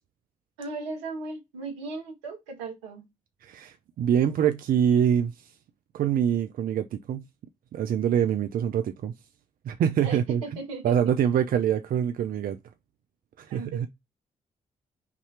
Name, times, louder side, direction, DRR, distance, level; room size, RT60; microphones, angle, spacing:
voice 1, 0.6-3.0 10.0-10.9 13.5-13.9, right 3 dB, 90° right, 1.4 m, -37 dB
voice 2, 3.4-5.5 5.9-7.3 7.7-9.1 9.6-10.6 10.8-12.6 13.4-13.9, right 9 dB, 60° right, 0.5 m, -25 dB
5.9 x 2.8 x 3.2 m
hypercardioid pair, 40°, 16 cm